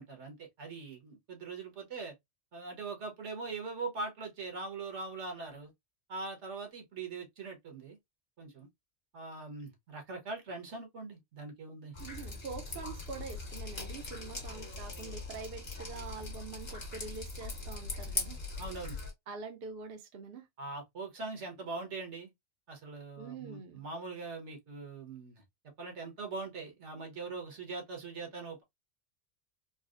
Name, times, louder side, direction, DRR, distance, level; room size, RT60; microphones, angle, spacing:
voice 1, 0.0-2.1 2.5-5.7 6.1-8.0 8.4-8.7 9.1-12.0 18.6-19.0 20.6-22.3 22.7-25.4 25.8-28.6, right 3 dB, 80° right, 1.5 m, -42 dB
Drip, 11.9-19.1, left 3 dB, 60° left, 1.5 m, -40 dB
voice 2, 12.0-18.4 19.3-20.4 23.2-23.8, right 5 dB, 60° right, 0.8 m, -45 dB
4.0 x 2.0 x 2.4 m
omnidirectional pair, 1.2 m